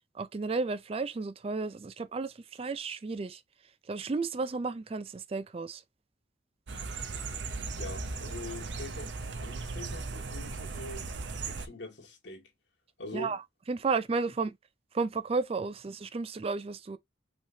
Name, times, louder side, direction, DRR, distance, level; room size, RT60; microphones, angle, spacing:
voice 1, 0.1-3.4 3.9-5.8 13.1-13.4 13.7-14.6 14.9-17.0, right 4 dB, 30° right, 0.4 m, -33 dB
sound 1, 6.7-11.7, right 3 dB, 75° right, 0.7 m, -37 dB
voice 2, 7.8-9.1 9.4-11.1 11.4-12.5 13.0-13.4, left 1 dB, 75° left, 2.0 m, -43 dB
5.4 x 3.4 x 2.7 m
head